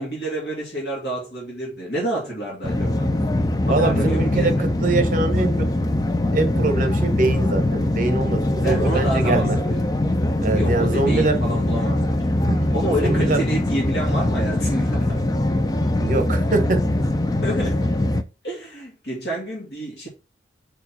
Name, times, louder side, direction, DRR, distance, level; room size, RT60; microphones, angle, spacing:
voice 1, 0.0-3.1 3.6-4.7 8.6-9.8 10.5-12.2 12.7-15.2 17.4-17.8 18.4-20.1, right 1 dB, 70° left, 2.8 m, -28 dB
sound 1, 2.6-18.2, left 1 dB, 20° left, 0.5 m, -22 dB
voice 2, 3.7-5.7 6.3-9.6 10.4-11.4 12.5-12.8 13.0-13.4 16.0-16.8, right 2 dB, 45° right, 1.1 m, -23 dB
4.8 x 4.7 x 5.5 m
head